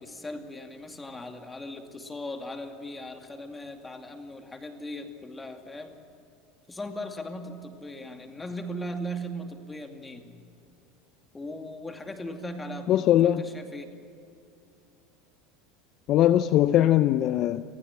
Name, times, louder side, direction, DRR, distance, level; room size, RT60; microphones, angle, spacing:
voice 1, 0.0-5.9 6.7-10.3 11.3-13.9, equal, 15° left, 2.4 m, -38 dB
voice 2, 12.9-13.4 16.1-17.6, left 12 dB, 50° left, 0.6 m, -21 dB
26.5 x 15.5 x 7.5 m
supercardioid pair, 115°, 0 cm